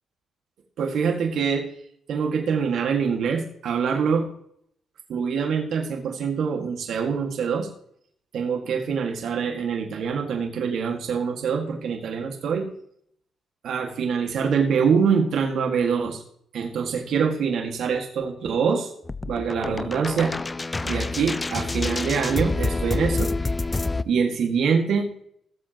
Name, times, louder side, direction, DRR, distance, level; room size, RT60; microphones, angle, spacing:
voice 1, 0.8-1.7 2.1-4.3 5.1-7.7 8.3-12.7 13.6-16.2 16.5-18.9 19.3-20.3 20.8-23.5 24.0-25.1, right 6 dB, 70° right, 2 dB, 1.9 m, -24 dB
sound 1, 19.1-24.0, left 3 dB, 20° left, 0.4 m, -27 dB
18.5 x 7.6 x 3.0 m, 0.67 s
cardioid pair, 90°, 0 cm